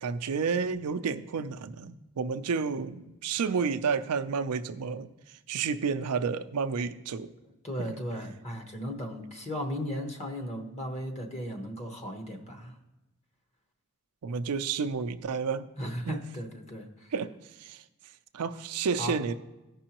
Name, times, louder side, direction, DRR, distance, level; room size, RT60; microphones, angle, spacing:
voice 1, 0.0-5.1 5.5-7.3 7.8-7.9 14.2-15.7 16.1-16.2 17.1-17.3 17.6-17.8 18.3-19.3, right 5 dB, 80° right, 10 dB, 0.5 m, -30 dB
voice 2, 7.6-12.7 15.8-17.1 19.0-19.2, equal, 30° left, 3 dB, 1.0 m, -36 dB
15.0 x 5.4 x 2.9 m, 1.0 s
head